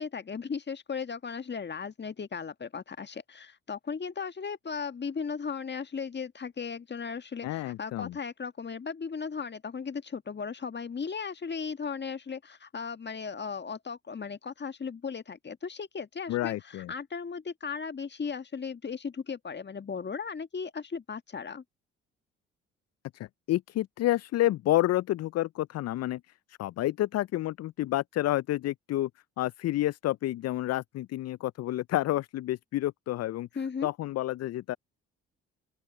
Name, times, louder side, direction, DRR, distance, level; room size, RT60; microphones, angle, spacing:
voice 1, 0.0-21.6 33.5-33.9, left 5 dB, 30° left, 1.7 m, -36 dB
voice 2, 7.4-8.2 16.3-16.9 23.1-26.2 26.5-29.1 29.4-33.5 33.8-34.8, left 15 dB, 50° left, 0.6 m, -29 dB
open air
hypercardioid pair, 45°, 34 cm